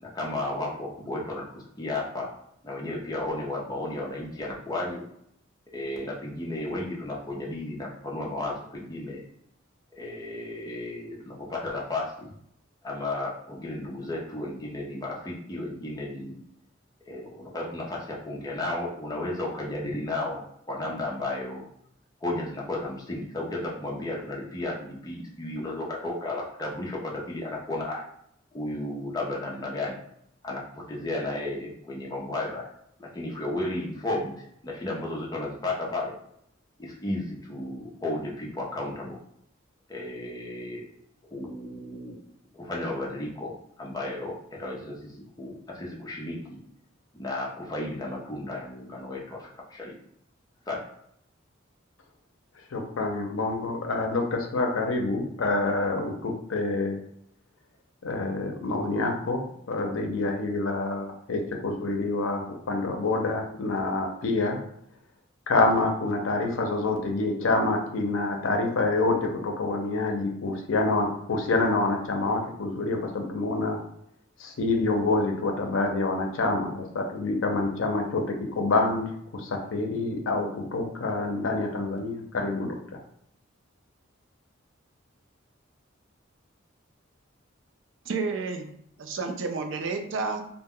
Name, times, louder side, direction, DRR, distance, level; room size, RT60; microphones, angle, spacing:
voice 1, 0.0-2.3 2.6-5.0 5.7-9.2 10.0-12.3 12.8-16.4 17.1-20.4 20.7-21.6 22.2-28.0 28.5-30.0 30.4-32.7 33.0-36.1 36.8-39.2 39.9-40.9 41.3-42.2 42.5-46.6 47.2-49.9 50.7-50.8, left 2 dB, 20° left, -3 dB, 0.5 m, -33 dB
voice 2, 52.7-57.0 58.0-59.4 59.7-64.6 65.5-73.8 74.4-79.1 79.3-82.8, left 2 dB, 85° left, 2 dB, 0.5 m, -27 dB
voice 3, 88.1-88.7 89.0-90.4, right 4 dB, 70° right, 5 dB, 0.4 m, -30 dB
2.1 x 2.1 x 3.5 m, 0.73 s
head